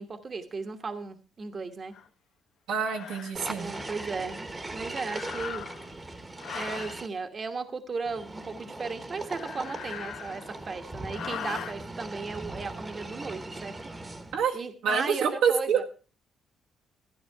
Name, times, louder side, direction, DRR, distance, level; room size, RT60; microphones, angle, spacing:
voice 1, 0.0-1.9 3.6-5.6 6.5-13.7 14.5-15.8, right 4 dB, 40° right, 8 dB, 1.2 m, -36 dB
sound 1, 1.9-2.1 2.8-3.3 5.0-5.9 6.4-7.0 9.2-10.6 11.1-11.8, left 8 dB, 80° left, 1.0 m, -40 dB
voice 2, 2.7-3.7 14.3-14.6 14.8-15.8, right 7 dB, 85° right, 1 dB, 1.7 m, -26 dB
sound 2, 3.3-7.1 8.1-14.4, right 2 dB, 20° right, 1.2 m, -40 dB
13.0 x 10.5 x 4.6 m, 0.37 s
cardioid pair, 90°, 0 cm